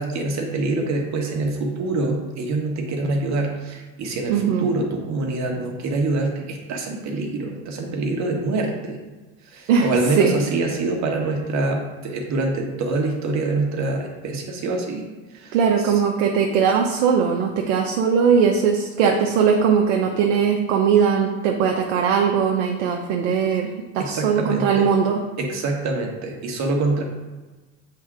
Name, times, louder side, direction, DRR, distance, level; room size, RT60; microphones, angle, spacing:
voice 1, 0.0-9.0 9.5-15.1 15.3-15.9 24.0-24.9 25.4-27.0, right 2 dB, 45° right, 1 dB, 1.6 m, -25 dB
voice 2, 4.3-4.7 9.7-9.9 10.2-10.3 15.5-23.7 23.9-25.2, right 6 dB, 80° right, 1 dB, 0.9 m, -19 dB
7.7 x 3.8 x 4.8 m, 1.2 s
hypercardioid pair, 90°, 37 cm